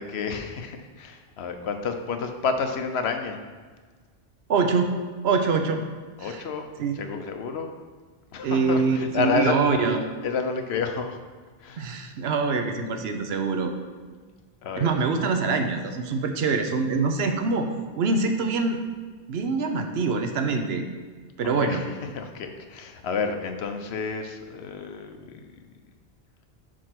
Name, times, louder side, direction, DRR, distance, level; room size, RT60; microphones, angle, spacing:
voice 1, 0.0-3.4 6.2-6.7 7.0-7.7 8.3-9.6 10.2-11.2 11.6-11.8 14.6-14.9 21.6-21.8 22.1-25.4, left 5 dB, 80° left, 6 dB, 0.9 m, -30 dB
voice 2, 4.5-4.9 5.2-5.8 6.2-6.5 6.8-7.0 8.4-10.1 11.8-13.7 14.7-17.7 18.0-18.8 19.3-20.9 21.4-21.8, right 4 dB, 75° right, 6 dB, 0.9 m, -24 dB
5.0 x 4.5 x 5.8 m, 1.5 s
omnidirectional pair, 1.1 m